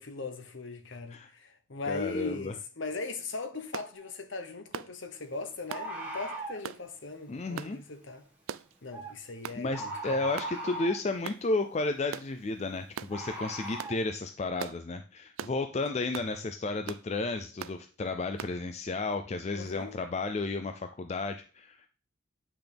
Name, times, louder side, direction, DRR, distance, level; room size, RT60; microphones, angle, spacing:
voice 1, 0.0-8.2 8.8-10.2 16.3-16.4 19.5-19.9, left 3 dB, 60° left, 1.0 m, -39 dB
voice 2, 1.9-2.5 7.3-7.8 9.6-21.9, left 3 dB, 30° left, 0.4 m, -33 dB
sound 1, 3.7-3.9 4.7-4.9 5.7-5.9 6.6-6.8 7.6-7.7 8.5-8.7 9.4-9.6 10.4-10.6 11.2-11.4 12.1-12.3 12.9-13.1 13.8-14.0 14.6-14.8 15.4-15.6 16.1-16.3 16.9-17.1 17.6-17.8 18.4-18.6, right 8 dB, 75° right, 0.3 m, -40 dB
Bird, 4.0-4.1 5.7-6.6 8.9-9.1 9.7-11.1 13.1-13.9, right 2 dB, 5° right, 1.6 m, -38 dB
8.7 x 5.9 x 3.5 m
head